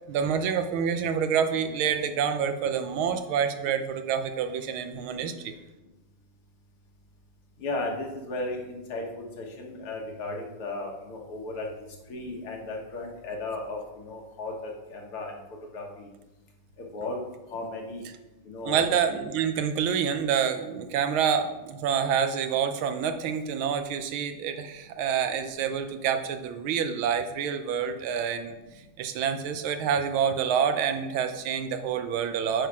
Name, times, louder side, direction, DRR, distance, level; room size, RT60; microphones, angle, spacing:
voice 1, 0.1-5.5 18.6-28.6 29.0-32.7, right 7 dB, 75° right, 8 dB, 1.5 m, -27 dB
voice 2, 7.6-11.7 12.1-15.4 15.7-16.1 16.8-17.2 17.5-18.0 18.4-18.9, left 2 dB, 75° left, 0 dB, 2.3 m, -35 dB
8.7 x 5.7 x 4.8 m, 1.0 s
omnidirectional pair, 2.4 m